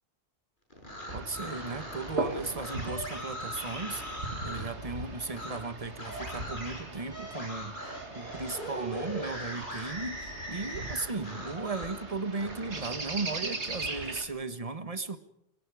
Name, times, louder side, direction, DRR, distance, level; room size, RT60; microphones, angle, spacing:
sound 1, 0.7-4.7 5.3-5.6 6.0-12.0 12.3-14.1, equal, 45° left, 7.1 m, -40 dB
voice 1, 1.1-7.8 8.1-15.2, right 3 dB, 35° right, 10 dB, 1.5 m, -36 dB
sound 2, 1.1-14.3, right 3 dB, 85° right, 2.5 m, -40 dB
28.5 x 18.5 x 5.0 m, 0.75 s
omnidirectional pair, 1.1 m